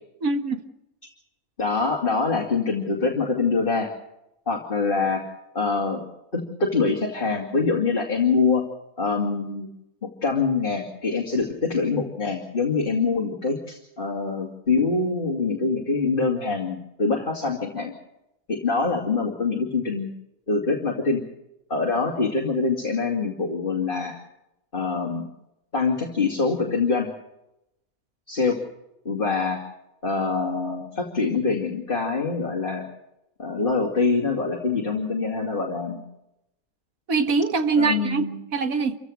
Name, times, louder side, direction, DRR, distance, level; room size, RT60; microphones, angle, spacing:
voice 1, 0.2-0.6 37.1-38.2 38.5-39.0, right 4 dB, 75° right, 7 dB, 2.0 m, -23 dB
voice 2, 1.6-3.9 4.5-5.3 5.5-6.0 6.3-8.6 9.0-9.7 10.0-17.9 18.5-20.1 20.5-21.2 21.7-24.2 24.7-25.3 25.7-27.1 28.3-28.6 29.0-29.6 30.0-32.9 33.4-36.0 37.8-38.4, left 4 dB, 35° left, 0 dB, 2.7 m, -24 dB
27.0 x 16.0 x 6.4 m, 0.86 s
omnidirectional pair, 1.5 m